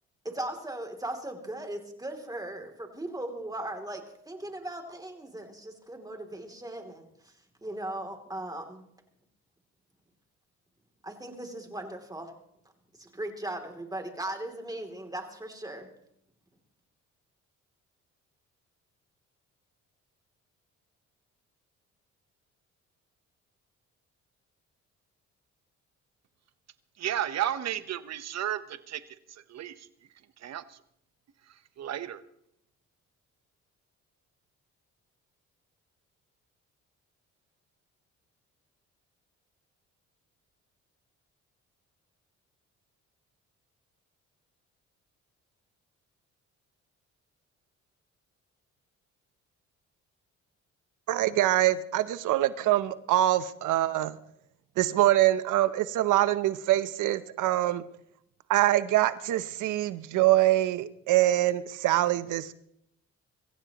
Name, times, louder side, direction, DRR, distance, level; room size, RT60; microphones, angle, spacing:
voice 1, 0.2-7.3 7.6-8.9 11.0-12.3 13.0-15.9, right 1 dB, 10° right, 2.8 m, -38 dB
voice 2, 27.0-29.0 29.5-29.7 30.4-30.6 31.8-32.2, right 11 dB, 60° right, 1.0 m, -32 dB
voice 3, 51.1-54.2 54.8-57.8 58.5-62.5, right 14 dB, 85° right, 0.8 m, -24 dB
24.0 x 15.0 x 3.0 m
cardioid pair, 90°, 30 cm